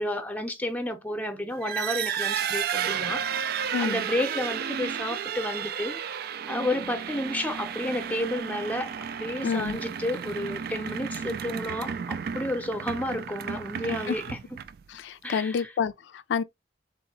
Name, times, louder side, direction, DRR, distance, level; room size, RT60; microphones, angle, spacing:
voice 1, 0.0-6.0 6.5-8.9 9.2-14.4 15.2-15.7, left 1 dB, 10° left, 0.7 m, -31 dB
sound 1, 1.5-14.9, right 8 dB, 55° right, 0.3 m, -33 dB
voice 2, 3.7-4.0 9.4-9.8 14.1-14.2 14.9-16.4, left 6 dB, 80° left, 0.3 m, -29 dB
3.7 x 2.8 x 4.0 m
head